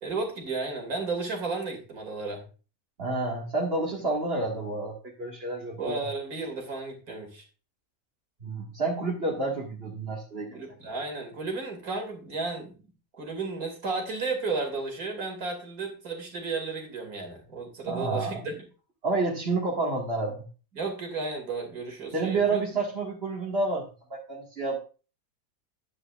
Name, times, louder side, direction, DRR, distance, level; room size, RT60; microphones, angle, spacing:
voice 1, 0.0-2.4 5.8-7.4 10.5-12.7 13.2-18.6 20.7-22.6, right 3 dB, 75° right, 3 dB, 3.0 m, -33 dB
voice 2, 3.0-6.0 8.4-10.6 17.9-18.4 19.0-20.5 22.1-24.8, right 3 dB, 40° right, -3 dB, 2.1 m, -29 dB
11.0 x 9.7 x 2.4 m, 0.34 s
omnidirectional pair, 1.6 m